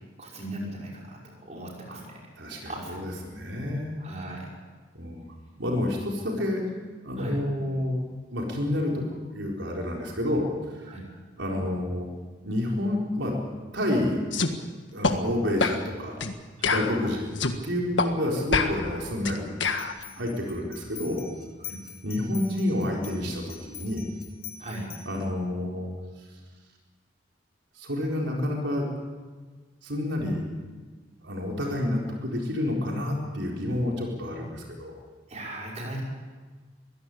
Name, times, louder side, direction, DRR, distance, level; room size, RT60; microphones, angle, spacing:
voice 1, 0.2-2.3 2.6-3.0 4.0-4.5 7.2-7.4 10.8-11.0 16.6-16.8 20.2-20.3 21.6-21.8 24.6-24.9 35.3-36.0, right 1 dB, 35° right, -2 dB, 5.7 m, -38 dB
voice 2, 2.4-3.9 4.9-5.2 5.6-6.6 7.0-8.0 8.3-10.5 10.8-10.9 11.4-12.1 12.4-13.3 13.7-14.2 14.9-16.2 16.7-17.3 17.6-19.5 20.2-21.3 22.0-24.1 25.1-25.9 27.8-28.9 29.8-30.5 31.2-34.9, left 1 dB, 80° right, -1 dB, 4.3 m, -29 dB
sound 1, 14.3-14.5 15.0-15.2 15.6-15.8 16.2-16.3 16.6-17.6 18.0-18.1 18.5-19.9, left 4 dB, 80° left, 1.7 m, -26 dB
sound 2, 19.6-25.3, left 10 dB, 50° left, 2.0 m, -45 dB
23.0 x 16.0 x 8.6 m, 1.4 s
head